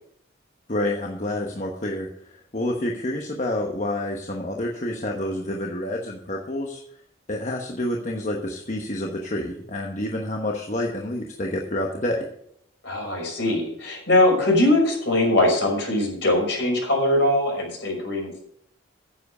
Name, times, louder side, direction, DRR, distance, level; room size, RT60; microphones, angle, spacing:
voice 1, 0.7-6.8 7.3-12.3, left 1 dB, 40° left, 1 dB, 1.1 m, -28 dB
voice 2, 12.8-18.4, left 1 dB, 60° left, -1 dB, 5.8 m, -21 dB
9.9 x 7.9 x 6.6 m, 0.70 s
head